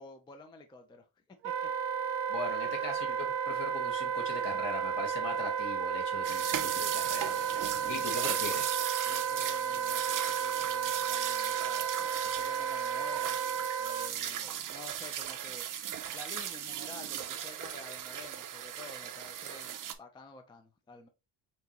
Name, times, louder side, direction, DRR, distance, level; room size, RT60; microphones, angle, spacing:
voice 1, 0.0-1.7 7.8-8.4 9.1-11.9 12.2-13.4 13.8-15.7 16.1-21.1, left 3 dB, 10° left, 0.4 m, -51 dB
Wind instrument woodwind instrument, 1.4-14.1, right 8 dB, 85° right, 1.0 m, -33 dB
voice 2, 2.3-7.5 7.9-8.7, left 3 dB, 65° left, 1.9 m, -39 dB
sound 1, 6.2-19.9, right 10 dB, 45° right, 0.6 m, -37 dB
5.7 x 2.9 x 2.9 m
cardioid pair, 170°, 44 cm